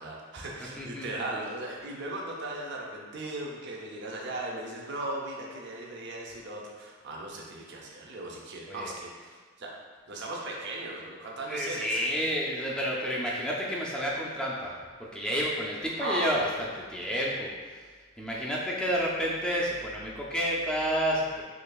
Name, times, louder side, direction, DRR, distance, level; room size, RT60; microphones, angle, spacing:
voice 1, 0.0-9.8 10.1-12.1 16.0-16.6 17.3-17.4, right 2 dB, 60° right, -2 dB, 0.5 m, -37 dB
voice 2, 0.6-1.1 8.7-8.9 11.5-14.7 15.0-16.5 16.9-17.8 18.2-21.4, equal, 5° left, -5 dB, 0.3 m, -30 dB
3.8 x 2.7 x 2.3 m, 1.5 s
head